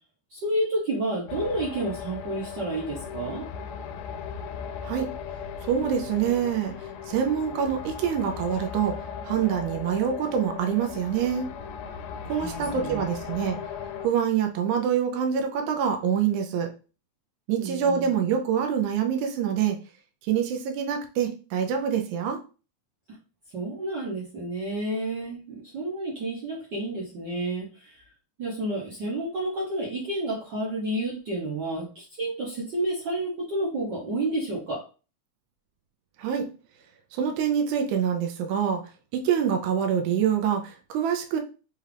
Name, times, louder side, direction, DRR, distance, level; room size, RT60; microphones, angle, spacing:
voice 1, 0.3-3.5 12.3-13.0 17.6-18.1 23.5-28.0 28.4-34.8, right 1 dB, 65° right, -5 dB, 1.1 m, -30 dB
sound 1, 1.3-14.1, left 7 dB, 90° left, 2.0 m, -37 dB
voice 2, 5.6-6.7 7.1-9.0 9.2-11.5 12.3-13.6 14.0-16.7 17.5-19.8 20.3-22.4 36.2-36.5 37.1-38.8 39.1-41.4, right 8 dB, 90° right, 4 dB, 2.1 m, -25 dB
5.4 x 2.4 x 3.3 m, 0.34 s
omnidirectional pair, 3.4 m